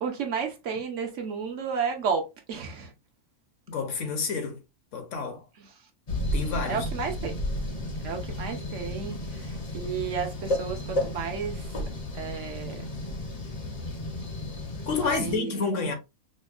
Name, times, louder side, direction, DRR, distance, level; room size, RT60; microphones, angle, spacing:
voice 1, 0.0-2.9 5.6-5.7 6.7-7.3 8.0-11.6 12.1-12.8 14.9-15.6, right 6 dB, 60° right, 0.9 m, -32 dB
voice 2, 3.7-4.6 4.9-5.4 6.3-6.9 14.9-15.9, left 4 dB, 60° left, 1.0 m, -29 dB
sound 1, 6.1-15.4, left 1 dB, 35° left, 0.6 m, -33 dB
5.1 x 2.2 x 2.3 m
omnidirectional pair, 1.6 m